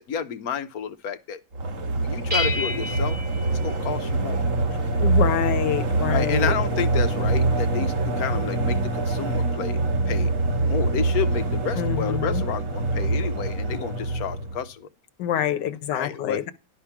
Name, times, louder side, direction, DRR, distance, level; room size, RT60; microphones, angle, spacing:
voice 1, 0.0-1.4 1.9-3.2 3.6-4.4 6.1-9.8 10.1-10.3 10.7-14.9 15.9-16.4, left 7 dB, 65° left, 1.1 m, -30 dB
sound 1, 1.5-14.6, right 2 dB, 50° right, 1.7 m, -24 dB
sound 2, 2.3-4.5, left 2 dB, 20° right, 1.7 m, -31 dB
voice 2, 5.0-6.5 11.8-12.4 15.2-16.5, left 11 dB, 85° left, 1.4 m, -26 dB
11.5 x 5.0 x 5.7 m
omnidirectional pair, 1.8 m